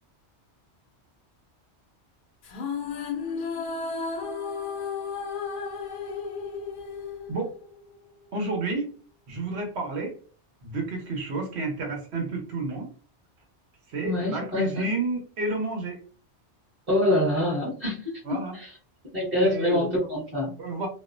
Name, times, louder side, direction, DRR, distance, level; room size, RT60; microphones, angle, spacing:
sound 1, 2.4-7.9, left 5 dB, 60° left, 0.6 m, -33 dB
voice 1, 8.3-8.9 9.3-10.1 10.6-12.9 13.9-16.0 18.2-18.6 19.4-19.9 20.6-20.9, right 3 dB, 65° right, 2 dB, 1.1 m, -30 dB
voice 2, 14.0-14.9 16.9-18.7 19.1-20.5, left 1 dB, 30° right, -7 dB, 1.0 m, -26 dB
2.5 x 2.0 x 2.4 m, 0.39 s
omnidirectional pair, 1.2 m